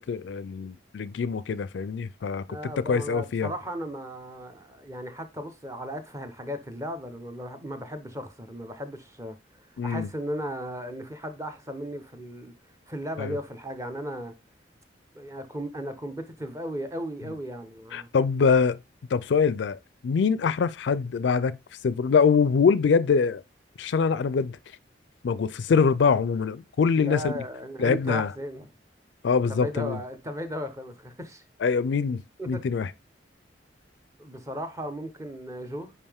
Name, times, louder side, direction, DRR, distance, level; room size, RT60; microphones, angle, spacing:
voice 1, 0.0-3.5 9.8-10.1 13.2-13.4 17.9-18.8 19.1-19.8 20.0-21.6 21.8-23.4 23.8-24.6 25.2-27.3 27.8-28.3 29.2-30.0 31.6-32.2 32.5-32.9, left 5 dB, 75° left, 0.4 m, -24 dB
voice 2, 2.5-9.4 9.8-12.5 12.9-14.3 15.1-18.1 27.0-28.7 29.5-31.4 32.4-32.6 34.2-35.9, equal, 15° right, 0.8 m, -36 dB
5.5 x 4.9 x 3.5 m
head